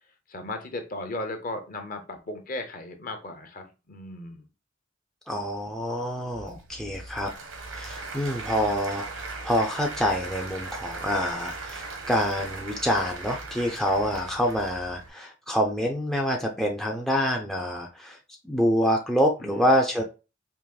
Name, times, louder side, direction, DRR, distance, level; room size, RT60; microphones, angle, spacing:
voice 1, 0.3-4.4 19.4-19.6 20.0-20.1, left 2 dB, 45° left, 6 dB, 0.7 m, -36 dB
voice 2, 5.3-7.3 7.7-18.2 18.4-20.0, equal, ahead, 2 dB, 0.4 m, -26 dB
Applause / Crowd, 6.3-15.1, right 3 dB, 85° right, 1.1 m, -38 dB
4.7 x 2.9 x 2.3 m, 0.30 s
head